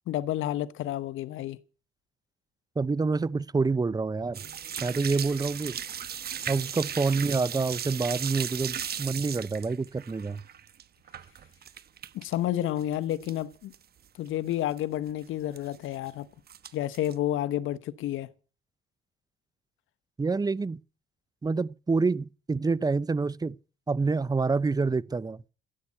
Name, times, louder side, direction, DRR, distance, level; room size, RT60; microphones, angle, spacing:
voice 1, 0.1-1.6 12.1-13.7 14.2-16.3 16.7-18.3, left 12 dB, 85° left, 1.2 m, -30 dB
voice 2, 2.8-4.4 4.8-5.8 6.5-10.4 20.2-20.8 21.4-23.6 23.9-25.4, right 4 dB, 20° right, 0.7 m, -27 dB
sound 1, 4.3-12.4 12.7-13.4 13.7-13.8 14.3-14.4 14.5-14.8 15.6-16.1 16.5-17.1, right 8 dB, 50° right, 1.1 m, -37 dB
15.0 x 8.7 x 9.1 m
cardioid pair, 90°, 20 cm